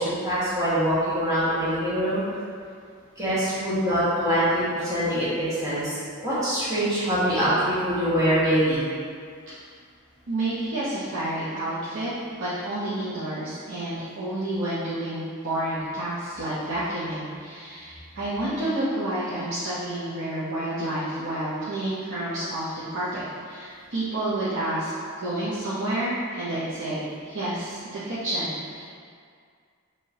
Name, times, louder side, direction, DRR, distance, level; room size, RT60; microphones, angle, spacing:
voice 1, 0.0-2.2 3.2-6.0 6.2-8.8, equal, 15° right, -13 dB, 1.4 m, -24 dB
voice 2, 10.3-12.1 12.4-24.9 25.2-28.9, right 1 dB, 60° right, -11 dB, 0.8 m, -29 dB
4.7 x 2.9 x 2.8 m, 2.1 s
head